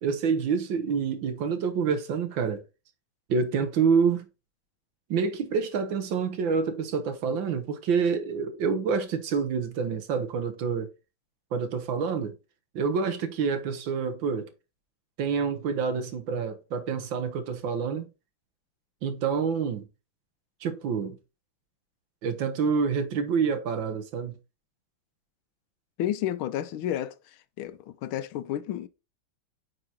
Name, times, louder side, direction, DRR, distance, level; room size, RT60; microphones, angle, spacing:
voice 1, 0.0-2.6 3.3-4.3 5.1-10.9 11.5-12.3 12.7-14.5 15.2-18.1 19.0-19.9 20.6-21.2 22.2-24.4, right 5 dB, 70° right, 1.7 m, -27 dB
voice 2, 26.0-27.2 27.6-28.9, left 11 dB, 85° left, 1.5 m, -31 dB
9.0 x 4.8 x 2.8 m
omnidirectional pair, 2.2 m